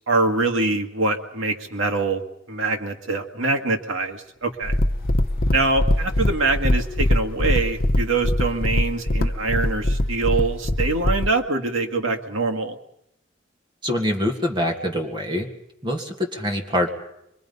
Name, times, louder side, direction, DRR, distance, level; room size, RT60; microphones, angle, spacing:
voice 1, 0.1-4.8 5.5-12.8, right 3 dB, 75° right, 4 dB, 1.9 m, -24 dB
sound 1, 4.3-8.1, left 1 dB, 5° right, 7.8 m, -48 dB
sound 2, 4.6-11.3, left 1 dB, 45° left, 0.9 m, -22 dB
voice 2, 13.8-15.5 15.8-16.9, left 1 dB, 25° right, 2 dB, 1.8 m, -24 dB
24.5 x 22.5 x 5.5 m, 0.80 s
head